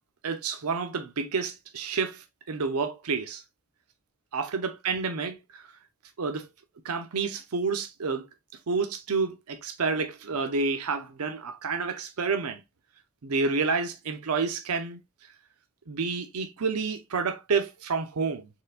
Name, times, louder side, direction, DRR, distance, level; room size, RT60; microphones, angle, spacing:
voice 1, 0.2-3.4 4.3-5.6 6.2-6.5 6.8-8.2 8.7-12.6 13.2-15.0 15.9-18.5, right 4 dB, 90° right, 0.6 m, -29 dB
4.4 x 3.9 x 2.4 m
head